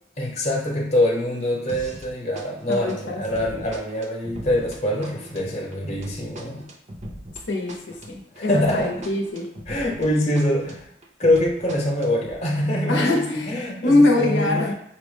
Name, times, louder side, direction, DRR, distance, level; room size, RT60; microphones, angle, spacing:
voice 1, 0.2-6.7 8.4-9.0 9.7-10.8 11.2-14.7, left 1 dB, 35° left, -2 dB, 0.8 m, -24 dB
sound 1, 1.7-2.1 2.3-10.1 10.3-12.3, right 1 dB, 35° right, 0.5 m, -40 dB
voice 2, 2.7-3.2 7.5-9.5 12.9-14.7, left 2 dB, 75° left, 1 dB, 0.7 m, -22 dB
5.6 x 2.1 x 3.2 m, 0.72 s
head